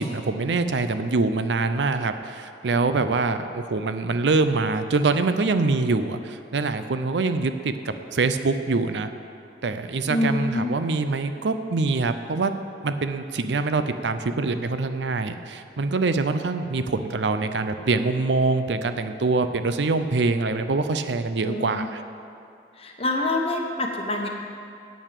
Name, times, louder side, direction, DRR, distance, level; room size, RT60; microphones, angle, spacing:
voice 1, 0.0-9.1 9.6-12.5 12.8-22.0, right 3 dB, 80° right, 9 dB, 0.6 m, -24 dB
voice 2, 10.1-10.7 21.4-21.9 22.8-24.3, left 2 dB, 35° left, 2 dB, 1.0 m, -26 dB
9.0 x 8.6 x 6.7 m, 2.5 s
head